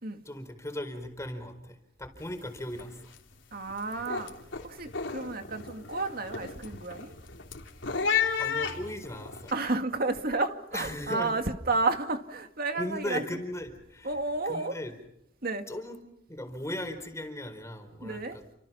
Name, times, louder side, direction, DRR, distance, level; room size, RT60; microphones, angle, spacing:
voice 1, 0.2-3.1 8.4-9.5 10.7-11.3 12.7-14.1 14.4-14.9 15.7-16.0 16.3-18.6, left 1 dB, 15° left, 4.5 m, -37 dB
sound 1, 2.2-2.5 2.7-3.2 3.6-9.5, left 6 dB, 85° left, 3.4 m, -33 dB
voice 2, 3.5-4.3 4.6-7.1 9.5-13.2 14.0-14.7 15.4-15.7 18.0-18.4, right 3 dB, 50° right, 2.3 m, -31 dB
30.0 x 26.0 x 5.8 m
head